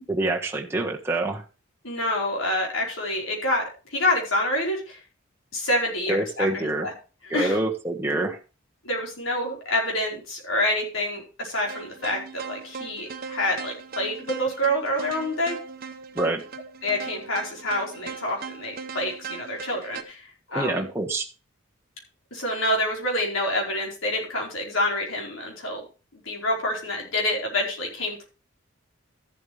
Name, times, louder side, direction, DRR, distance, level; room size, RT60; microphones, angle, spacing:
voice 1, 0.1-1.4 6.1-6.9 7.3-8.4 16.1-16.4 20.5-21.2, right 2 dB, 10° right, -1 dB, 1.5 m, -26 dB
voice 2, 1.8-3.6 3.9-5.0 5.5-6.9 7.3-7.6 8.8-15.6 16.8-20.9 22.3-25.8 26.1-28.2, left 1 dB, 80° left, -1 dB, 4.8 m, -27 dB
sound 1, 11.7-20.0, right 5 dB, 45° right, 1.0 m, -39 dB
14.0 x 7.9 x 3.4 m, 0.33 s
head